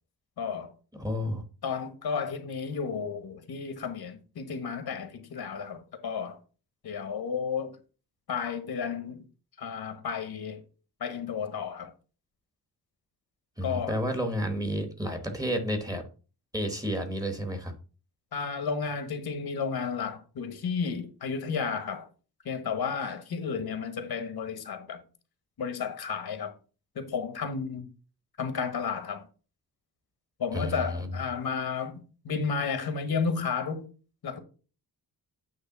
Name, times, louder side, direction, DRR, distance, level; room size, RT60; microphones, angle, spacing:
voice 1, 0.4-0.7 1.3-1.4 1.6-6.4 6.8-7.8 8.3-9.2 9.6-10.6 11.0-11.9 13.6-14.0 18.3-22.1 22.4-25.0 25.6-26.5 26.9-27.9 28.4-29.3 30.4-33.9 34.2-34.4, left 6 dB, 65° left, 1.3 m, -32 dB
voice 2, 0.9-1.4 13.6-16.0 16.5-17.7 30.5-31.2, equal, 10° right, 1.0 m, -31 dB
8.9 x 3.2 x 6.0 m
wide cardioid pair, 180°, 39 cm